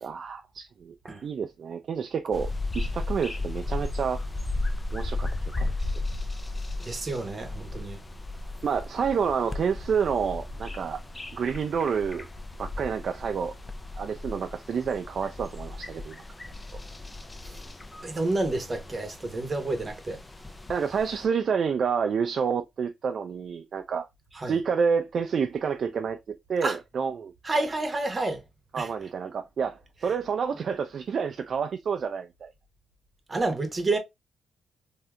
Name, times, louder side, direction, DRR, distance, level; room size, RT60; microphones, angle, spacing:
voice 1, 0.0-0.9 1.2-2.5 2.7-4.2 4.9-5.3 5.6-5.7 8.6-11.0 11.3-12.3 12.6-13.5 14.0-16.2 20.7-24.1 24.5-27.3 28.7-32.5, right 6 dB, 55° right, 0.3 m, -29 dB
sound 1, 2.3-21.3, left 2 dB, 15° left, 0.4 m, -35 dB
voice 2, 6.8-8.0 17.5-17.6 18.0-20.2 24.3-24.6 26.6-26.8 27.4-28.4 28.8-28.9 33.3-34.0, right 2 dB, 30° right, 0.8 m, -29 dB
3.5 x 2.7 x 2.2 m
cardioid pair, 120°, 0 cm